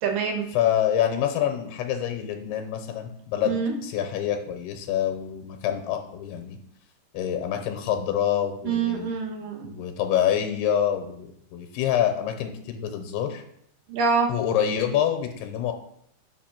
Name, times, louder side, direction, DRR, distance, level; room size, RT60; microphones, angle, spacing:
voice 1, 0.0-0.5 3.4-3.7 8.6-9.7 13.9-14.3, right 5 dB, 70° right, 3 dB, 2.3 m, -25 dB
voice 2, 0.5-3.6 3.8-6.6 7.1-9.1 9.6-13.4 14.3-15.7, left 10 dB, 90° left, 5 dB, 2.8 m, -26 dB
5.6 x 5.1 x 5.9 m, 0.70 s
omnidirectional pair, 4.6 m